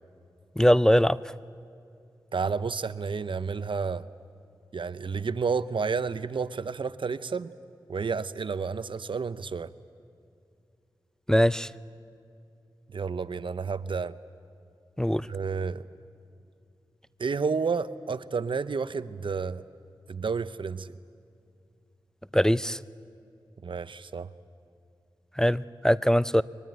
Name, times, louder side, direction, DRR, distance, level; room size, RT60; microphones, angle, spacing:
voice 1, 0.6-1.2 11.3-11.7 15.0-15.3 22.3-22.8 25.4-26.4, equal, 5° left, 17 dB, 0.5 m, -21 dB
voice 2, 2.3-4.0 4.7-7.5 7.9-9.7 12.9-14.2 15.3-15.9 17.2-19.6 20.1-20.9 23.6-24.3, right 5 dB, 70° right, 14 dB, 0.7 m, -30 dB
22.5 x 22.0 x 9.2 m, 2.5 s
cardioid pair, 45°, 9 cm